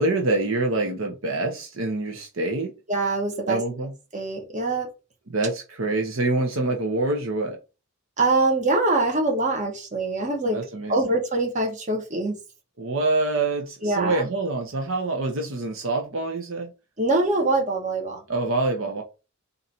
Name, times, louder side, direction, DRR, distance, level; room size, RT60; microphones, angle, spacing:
voice 1, 0.0-2.7 3.5-3.9 5.3-7.6 10.5-11.0 12.8-16.7 18.3-19.0, right 2 dB, 70° right, 0.8 m, -26 dB
voice 2, 2.9-3.6 4.1-4.9 8.2-10.6 10.9-12.4 13.8-14.2 17.0-18.2, right 2 dB, 35° right, 1.2 m, -24 dB
3.9 x 2.7 x 4.2 m
head